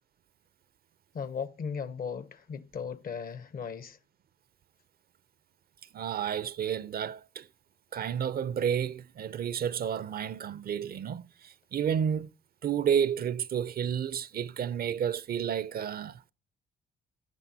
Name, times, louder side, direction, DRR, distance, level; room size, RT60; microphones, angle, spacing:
voice 1, 1.1-4.0, left 6 dB, 50° left, 0.8 m, -37 dB
voice 2, 5.9-7.5 7.9-12.3 12.6-16.3, right 8 dB, 50° right, 0.5 m, -31 dB
16.0 x 6.7 x 2.7 m
cardioid pair, 90°, 20 cm